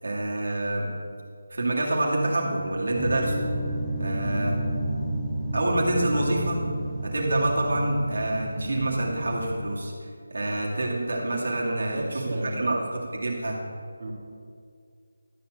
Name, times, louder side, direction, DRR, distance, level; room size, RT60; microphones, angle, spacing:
voice 1, 0.0-0.9 1.5-3.4 4.0-4.6 5.5-6.6 7.0-12.0 12.6-13.6, right 1 dB, 70° right, -3 dB, 2.3 m, -27 dB
sound 1, 2.9-9.6, right 1 dB, 5° left, 1.1 m, -31 dB
voice 2, 11.6-12.7 14.0-14.1, right 1 dB, 45° right, -4 dB, 2.1 m, -33 dB
12.0 x 4.3 x 7.9 m, 2.2 s
figure-of-eight pair, 165°, 0 cm